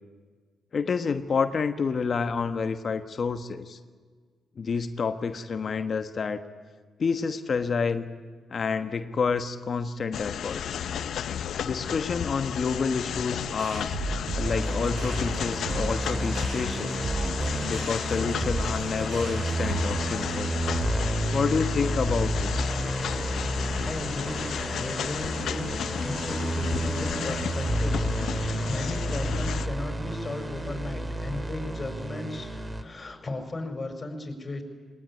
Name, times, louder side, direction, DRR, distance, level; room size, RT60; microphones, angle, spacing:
voice 1, 0.7-3.8 4.6-6.4 7.0-8.1 8.5-10.6 11.6-13.9 14.3-17.1 17.6-20.5 21.3-22.7, left 5 dB, 50° left, 8 dB, 1.2 m, -29 dB
sound 1, 10.1-29.7, left 9 dB, 70° left, 0.7 m, -33 dB
sound 2, 13.6-19.8, right 3 dB, 75° right, 5.6 m, -36 dB
sound 3, 14.4-32.8, right 1 dB, 20° right, 2.1 m, -30 dB
voice 2, 23.8-28.0 28.3-34.6, left 2 dB, 30° left, 5 dB, 5.1 m, -36 dB
20.0 x 19.5 x 9.7 m, 1.5 s
supercardioid pair, 65°, 0 cm